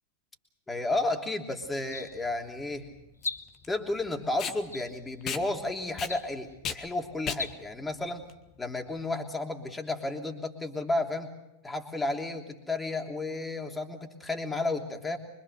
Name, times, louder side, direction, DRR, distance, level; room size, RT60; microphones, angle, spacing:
voice 1, 0.7-2.9 3.7-8.2 8.6-11.3 11.6-15.2, left 2 dB, 10° left, 3 dB, 3.1 m, -32 dB
sound 1, 0.9-1.1 1.8-2.4 3.2-3.8 4.7-5.3 6.0-6.5 7.3-7.5, left 4 dB, 80° left, 0.8 m, -40 dB
Packing tape duct tape, 1.6-9.1, left 7 dB, 30° left, 1.7 m, -39 dB
25.0 x 24.5 x 6.7 m, 0.91 s
figure-of-eight pair, 90°, 0 cm